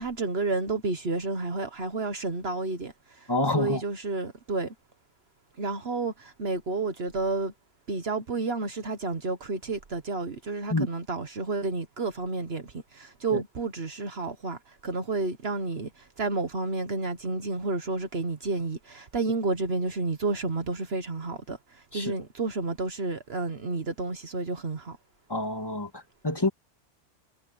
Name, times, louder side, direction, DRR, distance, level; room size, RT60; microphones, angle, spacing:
voice 1, 0.0-2.9 3.5-4.7 5.6-7.5 7.9-12.7 12.9-14.6 14.8-15.9 16.2-21.6 21.9-25.0, right 3 dB, 55° right, 1.5 m, -30 dB
voice 2, 3.3-3.8 10.7-10.9 13.3-13.4 21.9-22.1 25.3-26.5, left 2 dB, 20° left, 2.1 m, -27 dB
omnidirectional pair, 1.2 m